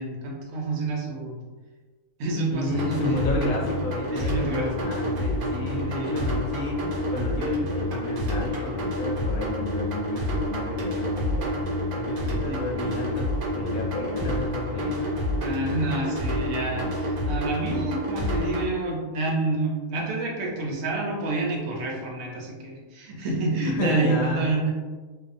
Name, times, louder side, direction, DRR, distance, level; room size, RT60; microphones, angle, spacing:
voice 1, 0.0-1.3 2.2-3.1 4.1-4.7 5.9-6.2 12.4-12.6 15.4-24.7, right 2 dB, 70° right, -1 dB, 1.0 m, -28 dB
voice 2, 2.5-11.6 11.9-15.2 23.6-24.6, left 2 dB, 75° left, -1 dB, 1.0 m, -31 dB
sound 1, 2.7-18.7, left 1 dB, 90° right, 1.2 m, -28 dB
2.6 x 2.1 x 2.4 m, 1.3 s
omnidirectional pair, 1.5 m